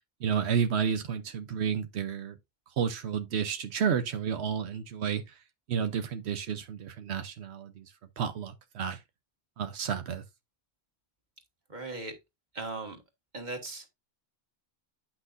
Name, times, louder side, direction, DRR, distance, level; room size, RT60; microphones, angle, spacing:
voice 1, 0.2-2.4 2.8-5.4 5.7-7.9 8.2-9.0 9.6-10.2, right 7 dB, 85° right, 1.0 m, -31 dB
voice 2, 11.7-12.2 12.5-13.0 13.3-13.9, right 2 dB, 45° right, 1.9 m, -38 dB
9.8 x 6.0 x 2.5 m
omnidirectional pair, 1.1 m